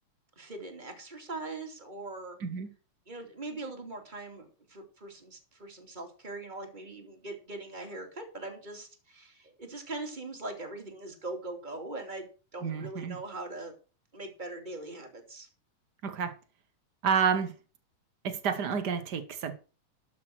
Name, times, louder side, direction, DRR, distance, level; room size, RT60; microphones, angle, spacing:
voice 1, 0.4-2.4 3.1-12.3 12.5-13.7 14.1-15.5, right 2 dB, 15° right, 2.5 m, -41 dB
voice 2, 12.6-13.2 16.0-16.3 17.0-17.5 18.2-19.5, right 6 dB, 65° right, 1.0 m, -29 dB
13.0 x 6.3 x 6.1 m
omnidirectional pair, 3.7 m